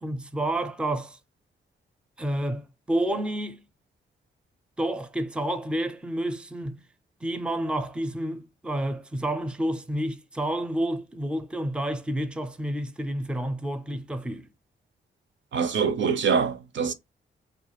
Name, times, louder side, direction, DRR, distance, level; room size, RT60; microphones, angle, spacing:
voice 1, 0.0-1.2 2.2-3.6 4.8-6.8 7.2-14.5, right 1 dB, 5° right, 0.4 m, -29 dB
voice 2, 15.5-16.9, right 6 dB, 65° right, 0.4 m, -24 dB
2.3 x 2.0 x 3.0 m
cardioid pair, 65°, 21 cm